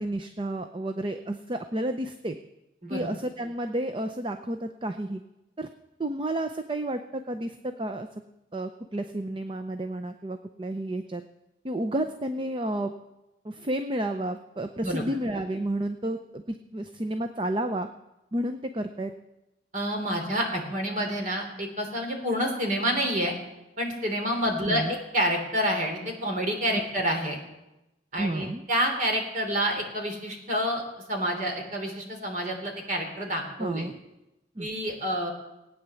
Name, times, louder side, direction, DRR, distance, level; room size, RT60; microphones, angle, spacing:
voice 1, 0.0-2.4 2.9-5.2 5.6-5.7 6.0-8.1 8.5-11.2 11.6-12.9 13.4-17.9 18.3-19.1 24.6-25.0 28.2-28.6 33.6-33.9 34.6-34.7, right 1 dB, 30° right, 8 dB, 0.6 m, -31 dB
voice 2, 19.7-23.4 23.8-27.4 28.1-30.8 31.1-33.9 34.6-35.3, equal, 45° right, 3 dB, 3.1 m, -28 dB
18.0 x 9.3 x 7.0 m, 0.96 s
head